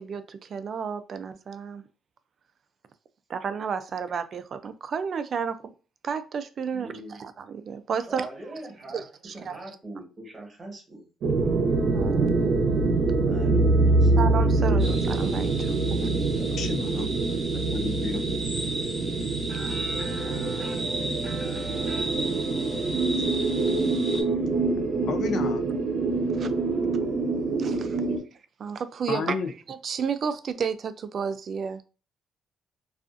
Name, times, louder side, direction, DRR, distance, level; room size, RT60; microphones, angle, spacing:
voice 1, 0.0-1.8 3.3-5.6 6.0-6.9 7.2-8.3 8.9-9.6 11.9-12.3 14.2-16.1 26.3-26.5 27.6-28.0 28.6-29.3 29.8-31.8, right 6 dB, 55° right, 0.3 m, -32 dB
voice 2, 6.7-7.2 8.1-9.0 9.3-11.0 13.2-14.1 15.8-17.4 18.4-18.5 19.5-22.1, right 2 dB, 30° right, 1.2 m, -43 dB
sound 1, 11.2-28.2, right 3 dB, 70° right, 0.7 m, -25 dB
sound 2, 14.8-24.2, right 1 dB, 10° right, 1.0 m, -36 dB
voice 3, 16.6-17.1 17.7-18.3 25.0-25.6 29.1-29.5, left 5 dB, 70° left, 0.4 m, -31 dB
2.4 x 2.4 x 2.4 m
cardioid pair, 90°, 0 cm